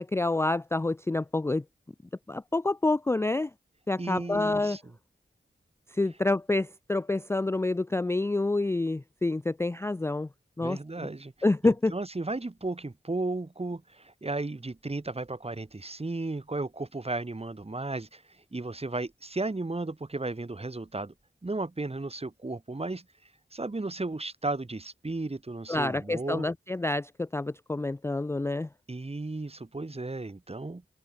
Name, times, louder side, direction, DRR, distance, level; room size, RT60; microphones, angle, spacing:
voice 1, 0.0-1.6 2.3-3.5 3.9-4.8 5.9-10.3 10.6-11.1 11.4-11.9 25.7-28.7, left 2 dB, 15° left, 0.4 m, -28 dB
voice 2, 4.0-4.8 10.6-11.3 11.6-18.2 18.5-21.1 21.4-23.0 23.5-26.5 28.9-30.8, right 2 dB, 30° right, 1.6 m, -34 dB
open air
wide cardioid pair, 55°, 20 cm